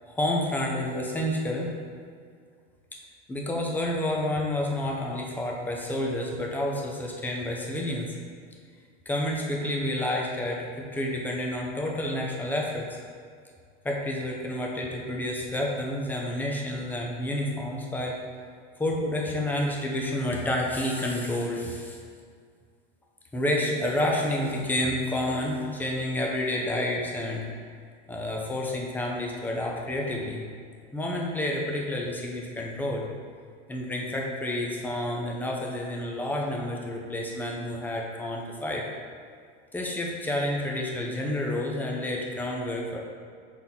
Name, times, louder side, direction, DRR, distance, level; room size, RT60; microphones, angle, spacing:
voice 1, 0.1-1.7 3.3-8.2 9.1-13.0 13.8-18.2 18.8-22.0 23.3-27.5 28.1-30.5 30.9-33.1 33.7-38.8 39.7-43.0, left 1 dB, 5° left, -2 dB, 0.7 m, -29 dB
5.6 x 4.0 x 4.2 m, 2.1 s
supercardioid pair, 135°, 31 cm